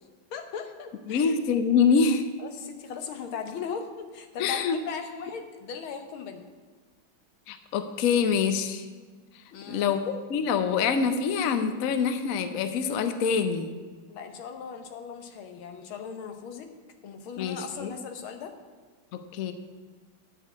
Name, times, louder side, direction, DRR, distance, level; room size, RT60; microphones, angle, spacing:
voice 1, 0.3-1.4 2.4-6.5 9.5-10.0 14.1-16.7 17.0-18.5, left 6 dB, 85° left, 6 dB, 1.8 m, -38 dB
voice 2, 1.1-2.2 4.4-4.8 7.5-8.9 9.7-10.0 10.3-13.7 17.4-17.9 19.1-19.5, left 6 dB, 60° left, 9 dB, 0.9 m, -25 dB
10.5 x 4.8 x 8.2 m, 1.4 s
omnidirectional pair, 2.2 m